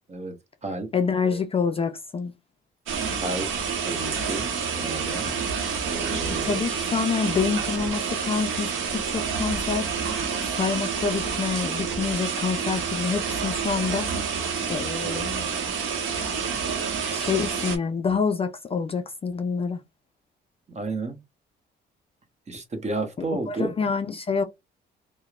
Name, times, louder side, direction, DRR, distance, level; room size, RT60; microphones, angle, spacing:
voice 1, 0.1-0.9 1.2-1.4 3.2-3.5 3.8-5.3 5.8-6.6 7.3-7.9 15.0-15.2 17.2-17.4 20.7-21.2 22.5-23.7, right 2 dB, 35° right, 0.9 m, -33 dB
voice 2, 0.9-2.3 5.3-5.4 6.3-9.9 10.5-14.1 14.7-15.5 17.1-19.8 23.5-24.4, left 5 dB, 30° left, 0.3 m, -27 dB
sound 1, 2.9-17.8, right 6 dB, 85° right, 0.7 m, -28 dB
2.8 x 2.0 x 2.4 m
cardioid pair, 90°, 20 cm